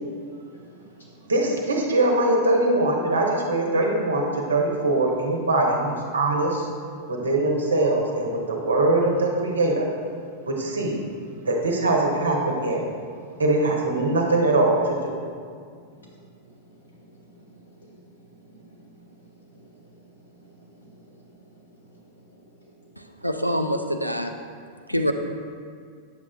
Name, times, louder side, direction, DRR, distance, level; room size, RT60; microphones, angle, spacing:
voice 1, 0.3-1.3 7.2-7.7 10.4-10.9 15.7-23.3 24.9-25.1, right 1 dB, 80° left, -5 dB, 1.9 m, -52 dB
voice 2, 1.3-6.7 7.1-9.9 10.5-11.0 11.4-12.8 13.4-15.0, right 2 dB, 70° right, 0 dB, 1.0 m, -22 dB
voice 3, 23.2-24.3 24.9-25.1, equal, 90° right, 6 dB, 0.4 m, -25 dB
9.3 x 7.2 x 2.4 m, 2.1 s
figure-of-eight pair, 90°, 0 cm